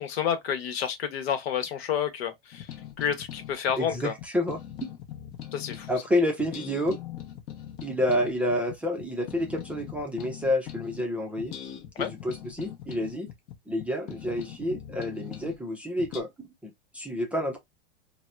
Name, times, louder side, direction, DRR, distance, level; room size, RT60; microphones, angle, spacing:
voice 1, 0.0-2.7 3.0-4.1 5.5-5.9 12.0-12.1, left 8 dB, 70° left, 1.0 m, -29 dB
sound 1, 2.5-6.0 6.4-11.1 11.4-15.6 16.0-16.2, left 11 dB, 40° left, 0.8 m, -41 dB
voice 2, 3.8-4.6 5.9-7.0 7.8-11.5 12.0-13.3 13.7-17.6, left 1 dB, 5° right, 0.5 m, -29 dB
4.0 x 2.1 x 2.2 m
hypercardioid pair, 125°, 32 cm